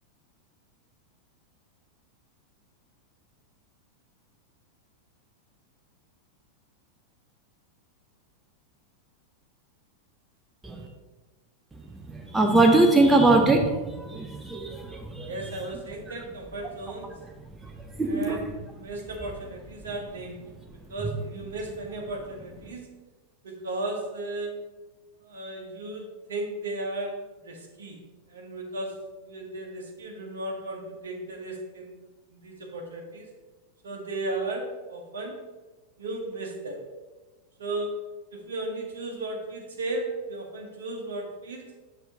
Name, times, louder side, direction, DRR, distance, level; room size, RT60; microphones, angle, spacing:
voice 1, 12.1-15.3 17.6-17.7 18.0-18.4, right 2 dB, 10° right, 3 dB, 0.7 m, -21 dB
voice 2, 15.3-17.1 18.0-18.5 18.8-20.4 20.9-22.9 23.4-24.5 25.2-26.0 26.3-28.0 28.3-28.9 29.2-31.9 32.3-33.3 33.8-35.4 36.0-36.8 37.6-37.9 38.3-41.7, right 2 dB, 65° right, 1 dB, 1.1 m, -35 dB
6.7 x 6.0 x 2.9 m, 1.2 s
figure-of-eight pair, 90°, 0 cm